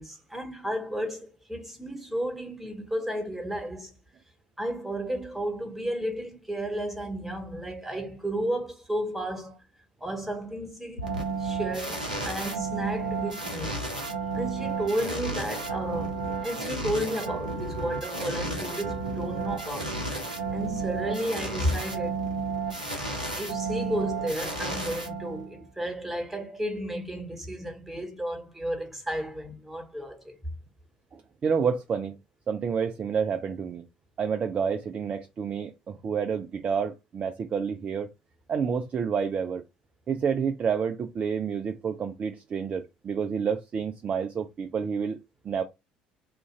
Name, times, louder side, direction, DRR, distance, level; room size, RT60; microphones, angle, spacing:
voice 1, 0.0-3.9 4.6-9.6 10.0-11.1 11.4-13.8 14.3-19.9 20.5-22.3 23.4-30.3, right 1 dB, 5° right, 1.3 m, -33 dB
sound 1, 11.0-25.6, right 3 dB, 90° right, 0.6 m, -32 dB
voice 2, 31.1-32.2 32.5-33.8 34.2-38.1 38.5-39.6 40.1-45.2 45.4-45.6, right 6 dB, 35° right, 0.4 m, -29 dB
2.9 x 2.5 x 3.7 m
figure-of-eight pair, 55°, 4 cm